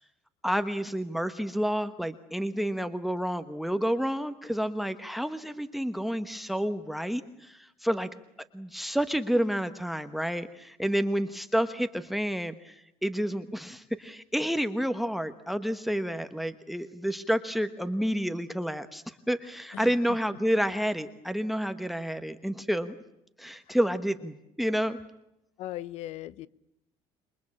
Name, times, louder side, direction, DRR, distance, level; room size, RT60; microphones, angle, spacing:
voice 1, 0.4-8.1 8.5-23.0 23.4-25.0, equal, ahead, 1.1 m, -29 dB
voice 2, 25.6-26.5, left 14 dB, 65° left, 0.9 m, -38 dB
28.0 x 23.0 x 8.7 m
cardioid pair, 155°, 12 cm